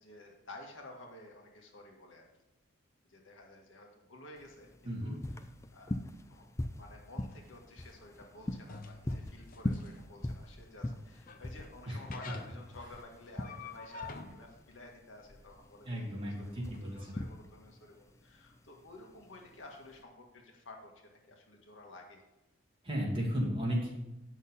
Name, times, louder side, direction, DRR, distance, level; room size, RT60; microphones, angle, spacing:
voice 1, 0.0-2.3 3.1-6.0 6.3-6.5 6.7-22.2, left 2 dB, 75° left, 1 dB, 1.8 m, -52 dB
sound 1, 4.4-20.0, left 1 dB, 15° left, 0.4 m, -41 dB
voice 2, 4.8-5.2 11.9-12.0 15.9-17.2 22.8-23.9, equal, 25° right, -3 dB, 2.4 m, -34 dB
sound 2, 7.3-16.9, left 4 dB, 45° left, 0.8 m, -51 dB
9.2 x 6.4 x 5.4 m, 0.93 s
head